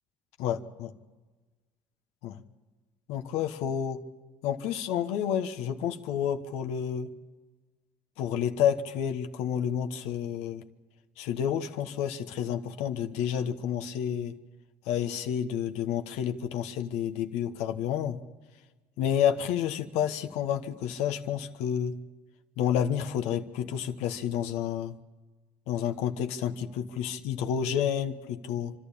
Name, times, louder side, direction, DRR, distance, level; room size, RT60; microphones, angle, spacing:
voice 1, 0.4-0.9 2.2-2.4 3.1-4.0 4.4-7.1 8.2-10.6 11.2-14.4 14.8-18.2 19.0-21.9 22.6-25.0 25.7-28.7, left 9 dB, 85° left, 6 dB, 1.2 m, -30 dB
27.5 x 12.0 x 8.5 m, 1.3 s
cardioid pair, 110°, 11 cm